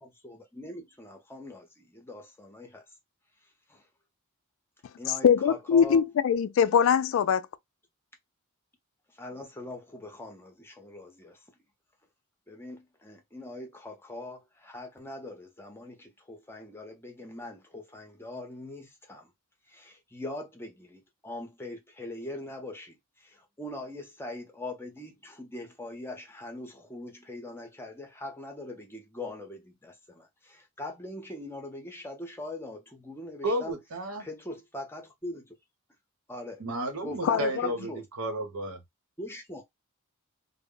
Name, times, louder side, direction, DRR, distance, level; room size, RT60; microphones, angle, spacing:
voice 1, 0.0-2.8 3.7-3.9 5.0-6.1 9.1-11.4 12.5-19.3 19.7-33.7 34.2-35.5 36.3-36.6 37.0-38.0 39.2-39.6, left 1 dB, 10° left, 0.7 m, -42 dB
voice 2, 5.2-7.4 37.2-37.7, left 7 dB, 65° left, 0.3 m, -22 dB
voice 3, 33.4-34.3 36.6-38.8, right 1 dB, 85° right, 0.9 m, -32 dB
2.1 x 2.1 x 3.6 m
head